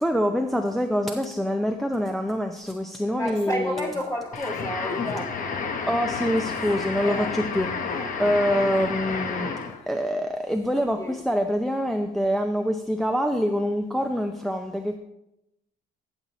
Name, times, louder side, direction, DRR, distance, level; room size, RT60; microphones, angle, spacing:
voice 1, 0.0-3.9 5.9-7.7 8.2-9.5 9.9-15.0, equal, ahead, 0.5 m, -25 dB
voice 2, 3.2-5.7 7.0-7.4 7.9-8.2 11.0-11.2, equal, 20° left, 2.4 m, -32 dB
sound 1, 4.3-9.8, left 5 dB, 55° left, 1.0 m, -30 dB
12.0 x 7.0 x 3.0 m
cardioid pair, 110°, 17 cm